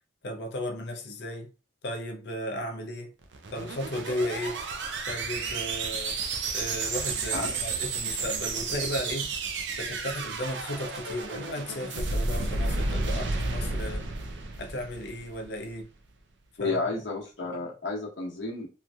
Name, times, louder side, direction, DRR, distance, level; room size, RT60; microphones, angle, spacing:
voice 1, 0.2-1.5 1.8-3.1 3.5-4.6 5.1-6.2 6.5-9.3 9.8-14.1 14.6-15.9 16.6-17.0, left 1 dB, 60° left, 0.5 m, -35 dB
sound 1, 3.2-15.6, right 3 dB, 70° right, 0.5 m, -32 dB
voice 2, 16.6-18.7, left 3 dB, 75° left, 0.9 m, -31 dB
2.9 x 2.6 x 2.3 m
head